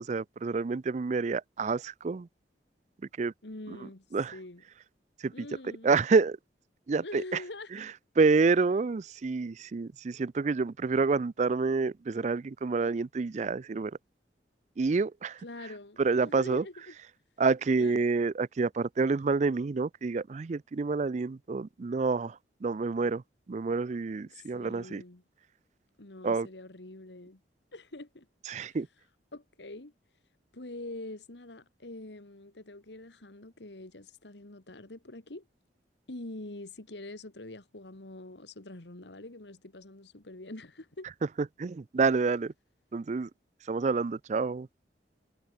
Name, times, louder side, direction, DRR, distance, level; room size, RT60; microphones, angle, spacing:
voice 1, 0.0-2.3 3.2-3.3 4.1-4.3 5.2-5.3 5.8-6.4 6.9-7.2 8.2-13.9 14.8-15.4 16.0-16.6 17.4-22.3 22.6-23.2 23.5-25.0 26.2-26.5 28.5-28.9 41.6-42.5 42.9-43.3 43.7-44.7, right 4 dB, 40° right, 0.4 m, -28 dB
voice 2, 3.4-4.0 4.3-4.6 5.3-5.9 7.0-7.7 15.4-17.0 17.8-18.1 24.3-25.2 26.0-27.4 27.7-28.8 29.3-29.9 30.5-35.5 36.1-41.1, left 2 dB, 80° left, 2.0 m, -45 dB
head